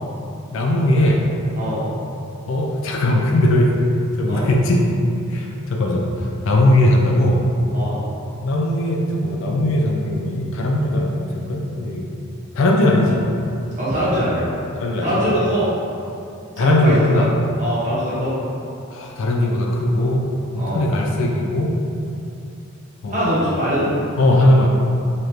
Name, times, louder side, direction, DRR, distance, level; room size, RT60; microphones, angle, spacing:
voice 1, 0.5-1.2 2.5-3.8 4.2-5.0 5.3-7.4 8.4-12.1 12.6-13.3 14.8-15.3 16.6-17.3 18.9-21.8 23.0-23.3 24.2-24.7, left 1 dB, 60° left, 0 dB, 0.3 m, -19 dB
voice 2, 13.8-14.5 15.0-15.7 16.6-17.3 17.6-18.3 20.6-20.8 23.1-23.9, equal, 30° right, -10 dB, 0.9 m, -22 dB
2.9 x 2.4 x 3.1 m, 2.6 s
head